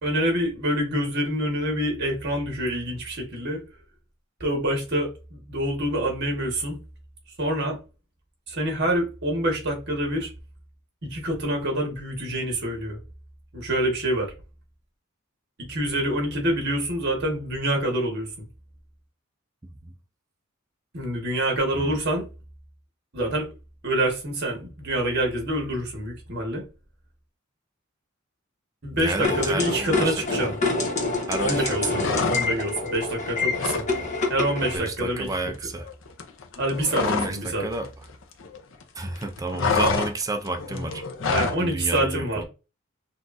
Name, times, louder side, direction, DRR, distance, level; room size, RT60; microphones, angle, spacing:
voice 1, 0.0-3.6 4.4-6.8 7.4-7.8 8.5-10.3 11.1-13.0 13.5-14.3 15.7-18.5 20.9-22.2 23.1-23.5 23.8-26.6 28.8-30.6 31.4-33.8 34.3-35.3 36.6-37.7 41.2-42.4, right 1 dB, 55° right, 1.5 m, -26 dB
voice 2, 19.6-19.9 21.7-22.0 28.9-30.5 31.3-32.1 33.9-34.1 34.7-35.9 36.9-37.9 39.0-41.0 41.6-42.4, right 2 dB, 15° right, 0.5 m, -31 dB
sound 1, 29.2-34.8, left 3 dB, 35° left, 1.1 m, -27 dB
sound 2, 31.9-32.8 33.1-33.9 34.2-34.4 34.7-37.5 37.7-38.8 39.1-41.6, left 5 dB, 65° left, 0.7 m, -28 dB
6.1 x 2.5 x 2.6 m
head